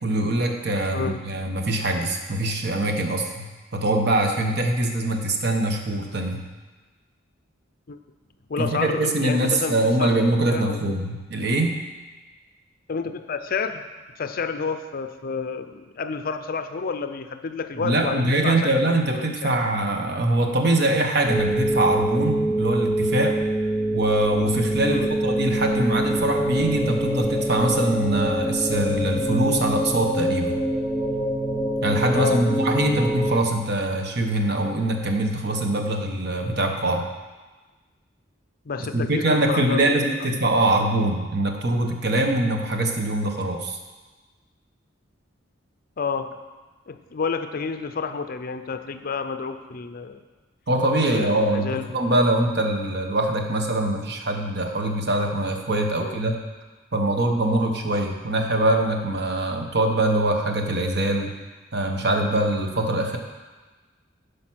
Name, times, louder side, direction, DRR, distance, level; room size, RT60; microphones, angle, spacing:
voice 1, 0.0-3.5 3.7-6.4 8.6-11.8 17.8-23.4 23.9-30.6 31.8-37.1 38.9-43.8 50.7-56.4 56.9-61.3 61.7-63.2, right 1 dB, 55° right, 4 dB, 1.0 m, -23 dB
voice 2, 8.5-10.9 12.9-13.8 14.2-19.6 24.8-25.2 32.1-32.4 38.7-40.0 46.0-46.3 46.9-50.2 51.1-52.0 56.0-56.2, left 5 dB, 45° left, 9 dB, 0.5 m, -30 dB
sound 1, 21.3-33.4, right 1 dB, 5° right, 0.6 m, -25 dB
10.0 x 5.1 x 6.1 m, 1.3 s
head